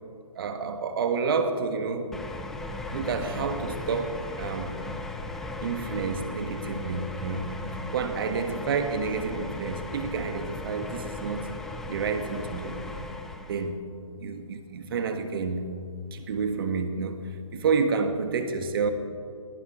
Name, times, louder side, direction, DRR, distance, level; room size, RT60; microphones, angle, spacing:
voice 1, 0.4-2.1 2.9-4.7 5.6-7.5 7.9-11.5 11.9-12.8 13.5-13.8 14.2-15.7 16.1-17.2 17.5-18.9, right 5 dB, 45° right, 7 dB, 1.6 m, -29 dB
sound 1, 2.1-13.7, left 2 dB, ahead, 0.3 m, -37 dB
22.0 x 18.0 x 3.2 m, 2.4 s
figure-of-eight pair, 140°, 17 cm